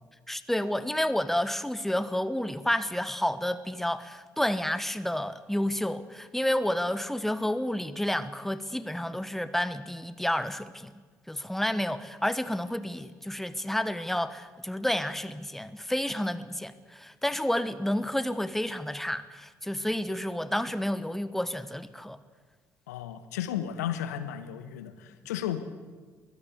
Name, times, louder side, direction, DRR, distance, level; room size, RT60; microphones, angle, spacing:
voice 1, 0.3-10.9 11.3-22.2, left 1 dB, 5° left, 1.2 m, -30 dB
voice 2, 22.9-25.6, left 10 dB, 75° left, 1.3 m, -34 dB
23.0 x 15.5 x 8.3 m
figure-of-eight pair, 50°, 9 cm